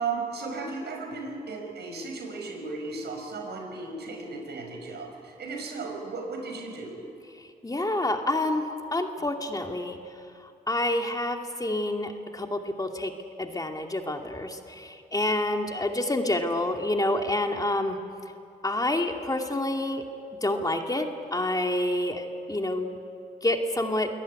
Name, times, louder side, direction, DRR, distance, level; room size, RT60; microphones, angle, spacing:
voice 1, 0.0-7.0, right 4 dB, 70° right, 3 dB, 5.6 m, -35 dB
voice 2, 7.6-10.0 10.7-13.1 13.4-18.0 18.6-20.0 20.4-23.0 23.4-24.1, left 1 dB, 20° left, 3 dB, 2.4 m, -28 dB
23.0 x 18.5 x 9.6 m, 2.4 s
cardioid pair, 60°, 18 cm